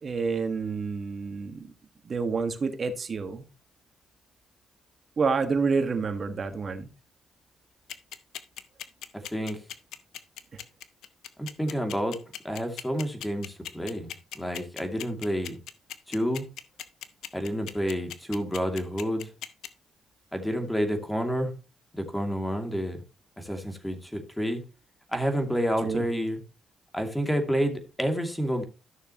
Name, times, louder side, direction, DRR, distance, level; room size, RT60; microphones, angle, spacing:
voice 1, 0.0-1.7 2.0-3.5 5.2-6.9 25.8-26.0, right 4 dB, 50° right, 8 dB, 1.6 m, -28 dB
sound 1, 7.9-19.7, left 11 dB, 80° left, 0.8 m, -38 dB
voice 2, 11.4-12.2 12.4-15.6 16.1-16.5 17.3-19.3 20.3-21.5 21.9-23.0 23.4-24.6 25.1-26.4 26.9-28.6, equal, 10° left, 5 dB, 2.5 m, -29 dB
13.0 x 6.6 x 3.0 m, 0.31 s
supercardioid pair, 60°, 0 cm